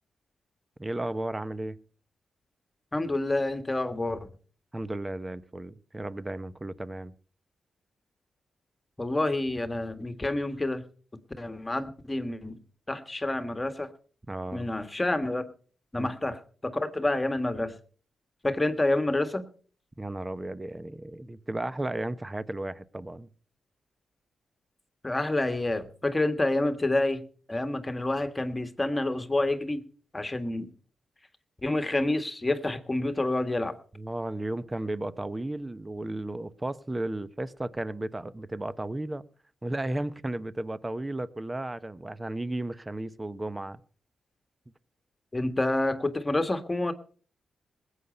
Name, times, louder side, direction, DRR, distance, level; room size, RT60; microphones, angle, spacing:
voice 1, 0.8-1.8 4.7-7.1 14.3-14.7 16.0-16.1 20.0-23.3 34.0-39.2 39.6-43.8, right 1 dB, 25° right, 0.9 m, -34 dB
voice 2, 2.9-4.3 9.0-10.8 11.4-12.6 12.9-13.9 14.5-15.5 15.9-17.7 18.4-19.4 25.0-27.2 27.5-29.8 30.1-30.7 31.6-33.7 45.3-46.9, left 2 dB, 25° left, 1.7 m, -28 dB
19.5 x 8.3 x 5.4 m
supercardioid pair, 45°, 0 cm